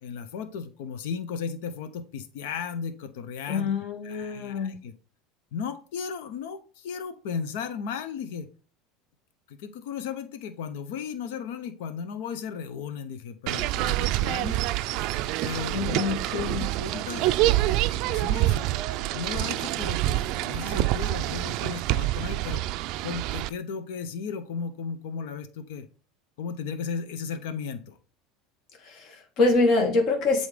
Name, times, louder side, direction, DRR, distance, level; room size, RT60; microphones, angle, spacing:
voice 1, 0.0-3.7 4.0-4.9 5.5-8.5 9.5-14.6 15.4-16.1 16.4-17.3 18.1-22.6 23.0-25.9 26.4-28.0, left 6 dB, 75° left, 0.8 m, -35 dB
voice 2, 3.5-4.7 15.7-16.7 28.8-30.5, left 3 dB, 55° left, 1.6 m, -25 dB
sound 1, 13.5-23.5, right 16 dB, 60° right, 0.3 m, -26 dB
8.0 x 2.8 x 5.0 m
supercardioid pair, 100°, 0 cm